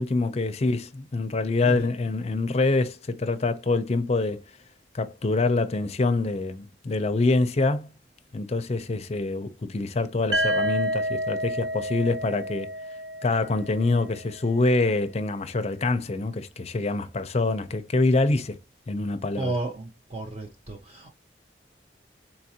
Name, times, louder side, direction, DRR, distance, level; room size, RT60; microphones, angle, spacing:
voice 1, 0.0-4.4 4.9-7.9 8.3-12.7 13.2-18.6 18.9-19.5, left 3 dB, 35° left, 0.5 m, -25 dB
sound 1, 10.3-14.2, equal, 75° right, 0.8 m, -29 dB
voice 2, 19.3-21.1, right 2 dB, 35° right, 0.6 m, -33 dB
4.0 x 2.5 x 2.8 m
head